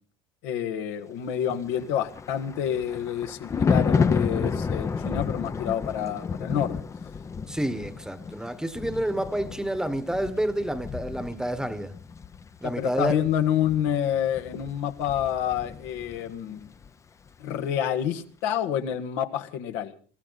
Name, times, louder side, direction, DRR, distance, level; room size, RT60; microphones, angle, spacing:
voice 1, 0.4-6.8 12.8-16.7 17.4-19.9, left 9 dB, 80° left, 1.7 m, -28 dB
Thunder, 1.7-16.3 16.6-16.9, left 5 dB, 20° left, 0.7 m, -31 dB
voice 2, 7.5-11.9 12.6-13.1, right 1 dB, 5° right, 1.2 m, -29 dB
23.0 x 14.0 x 4.0 m
supercardioid pair, 120°, 14 cm